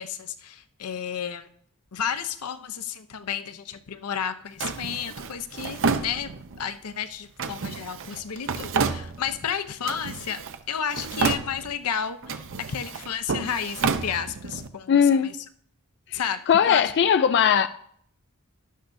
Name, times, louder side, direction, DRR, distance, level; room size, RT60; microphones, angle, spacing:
voice 1, 0.0-1.5 1.9-10.4 10.7-15.4 16.1-16.9, left 8 dB, 85° left, 0.7 m, -32 dB
Drawer open or close, 4.6-6.7 7.4-9.5 9.8-10.6 10.9-11.9 12.2-14.7, right 4 dB, 60° right, 0.7 m, -30 dB
voice 2, 14.9-15.3 16.1-16.2 16.5-17.7, left 7 dB, 50° left, 0.4 m, -19 dB
12.0 x 11.5 x 2.6 m
head